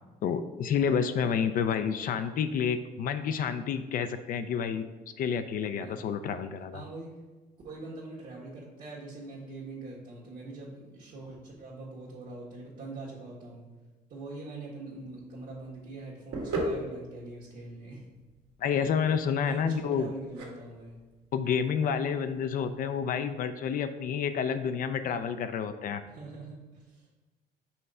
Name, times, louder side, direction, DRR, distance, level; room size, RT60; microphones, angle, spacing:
voice 1, 0.2-4.9 5.2-6.8 18.6-20.1 21.3-26.0, left 7 dB, 55° left, 9 dB, 0.5 m, -29 dB
voice 2, 6.7-7.2 7.6-13.6 14.1-18.0 19.4-21.0 26.1-27.2, right 2 dB, 60° right, -6 dB, 1.6 m, -43 dB
sound 1, 15.0-22.9, right 1 dB, 80° right, 1.8 m, -39 dB
5.6 x 3.2 x 5.4 m, 1.3 s
cardioid pair, 110°, 17 cm